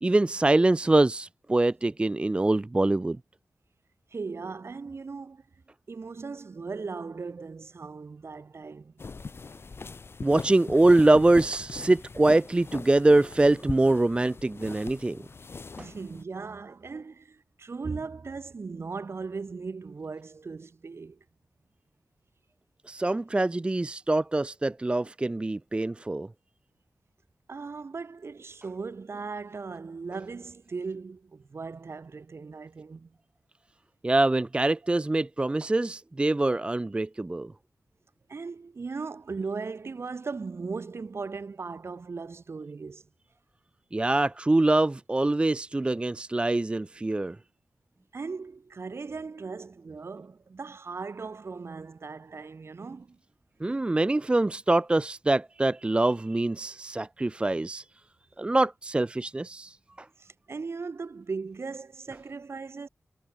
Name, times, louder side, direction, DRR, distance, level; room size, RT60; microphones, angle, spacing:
voice 1, 0.0-3.2 10.2-15.2 15.8-15.9 22.9-26.3 34.0-37.5 43.9-47.4 53.6-57.8 58.4-60.1, right 2 dB, 20° right, 0.5 m, -24 dB
voice 2, 4.1-5.4 5.9-8.9 15.8-21.2 27.5-33.1 38.3-43.0 48.1-53.2 60.2-62.9, right 4 dB, 55° right, 6.4 m, -38 dB
sound 1, 9.0-16.2, left 4 dB, 50° left, 6.9 m, -41 dB
wide cardioid pair, 125°, 5 cm